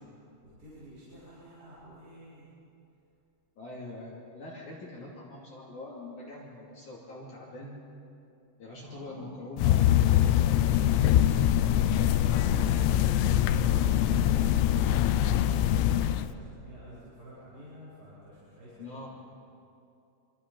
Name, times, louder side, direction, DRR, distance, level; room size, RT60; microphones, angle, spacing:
voice 1, 0.4-2.5 8.8-9.3 12.3-19.1, equal, 20° right, -10 dB, 7.2 m, -48 dB
voice 2, 3.6-7.8 8.6-11.5 11.7-13.0 18.8-19.1, left 1 dB, 45° left, -4 dB, 3.8 m, -44 dB
sound 1, 9.6-16.3, left 11 dB, 85° left, 3.0 m, -23 dB
26.5 x 25.5 x 5.5 m, 2.6 s
omnidirectional pair, 5.1 m